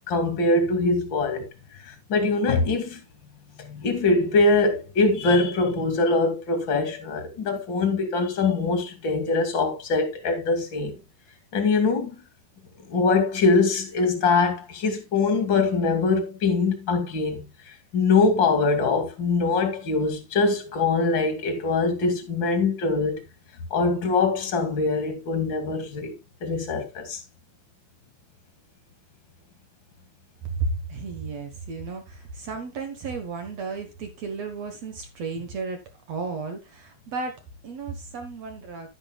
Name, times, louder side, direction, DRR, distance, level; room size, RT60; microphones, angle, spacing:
voice 1, 0.1-1.5 1.8-3.0 3.6-10.9 11.5-12.1 12.9-17.5 17.9-23.2 23.7-26.1 26.4-27.2, left 3 dB, 35° left, 2.2 m, -23 dB
voice 2, 30.4-35.8 36.1-38.9, right 4 dB, 65° right, 1.7 m, -33 dB
11.5 x 10.5 x 2.4 m
omnidirectional pair, 5.0 m